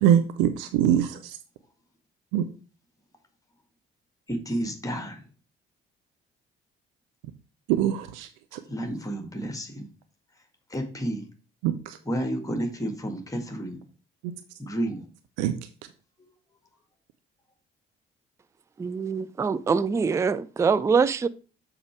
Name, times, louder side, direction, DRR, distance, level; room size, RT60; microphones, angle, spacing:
voice 1, 0.0-1.4 2.3-2.4 7.7-8.6 11.6-12.0 14.2-14.3 15.4-15.6, right 10 dB, 60° right, 0.7 m, -23 dB
voice 2, 4.3-5.2 8.7-9.9 10.7-11.3 12.1-13.8 14.6-15.1, right 1 dB, 10° left, 1.8 m, -31 dB
voice 3, 18.8-21.3, right 5 dB, 10° right, 0.4 m, -24 dB
7.2 x 4.9 x 4.6 m
figure-of-eight pair, 45°, 29 cm